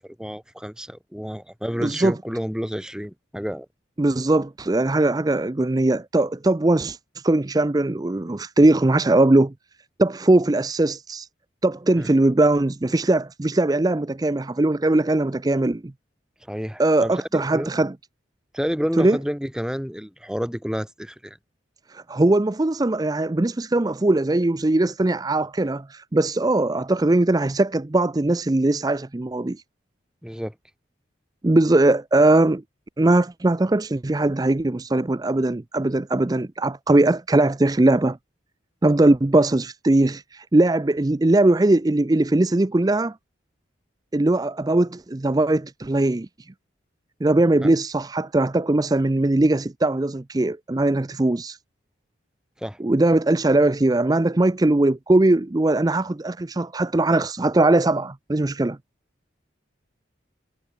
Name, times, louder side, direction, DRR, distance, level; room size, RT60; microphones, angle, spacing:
voice 1, 0.0-3.6 12.0-12.1 16.5-17.7 18.5-21.4 30.2-30.5 47.6-47.7 52.6-52.8, equal, 5° right, 1.8 m, -30 dB
voice 2, 1.8-2.2 4.0-9.5 10.0-11.3 11.6-15.9 16.8-17.9 19.0-19.2 21.9-29.6 31.4-32.6 33.0-38.2 38.8-43.1 44.1-46.5 47.2-51.6 52.8-58.8, right 2 dB, 20° right, 0.4 m, -20 dB
head